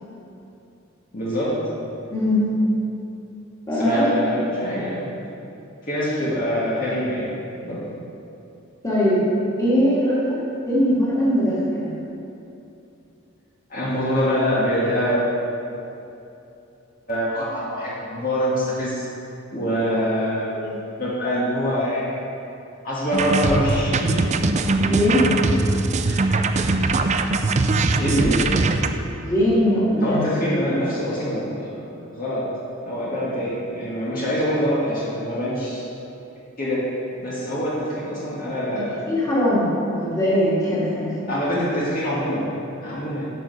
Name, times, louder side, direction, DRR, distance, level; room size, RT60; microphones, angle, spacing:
voice 1, 1.1-1.6 3.7-5.2 5.8-7.4 7.6-7.8 13.7-15.2 17.1-19.1 19.5-20.5 21.0-22.1 22.8-24.2 26.0-26.4 27.9-28.5 30.0-31.7 32.1-32.4 32.8-35.9 36.6-36.8 37.2-39.0 41.3-42.5 42.8-43.3, equal, 45° left, -8 dB, 1.9 m, -24 dB
voice 2, 2.1-2.5 3.7-4.1 8.8-9.2 9.6-11.9 20.6-20.7 24.8-25.3 29.2-30.3 38.7-38.8 39.1-41.1, equal, 15° left, -8 dB, 2.5 m, -21 dB
sound 1, 23.1-28.9, right 3 dB, 35° right, 0.4 m, -21 dB
10.0 x 6.5 x 5.4 m, 2.8 s
head